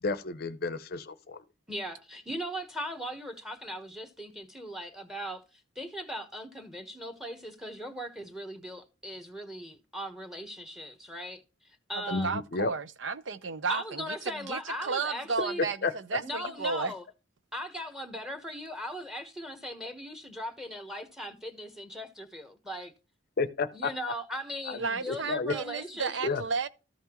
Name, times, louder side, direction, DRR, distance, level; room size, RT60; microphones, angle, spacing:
voice 1, 0.0-1.4 12.1-12.7 15.8-15.9 23.4-23.9 24.6-24.8 25.1-25.6 26.2-26.4, left 4 dB, 50° left, 0.6 m, -31 dB
voice 2, 1.7-12.3 13.7-15.6 16.2-17.0 17.5-22.9 23.7-26.4, equal, ahead, 1.1 m, -39 dB
voice 3, 11.9-16.9 24.7-26.7, right 4 dB, 70° right, 0.7 m, -33 dB
13.5 x 5.8 x 3.0 m
head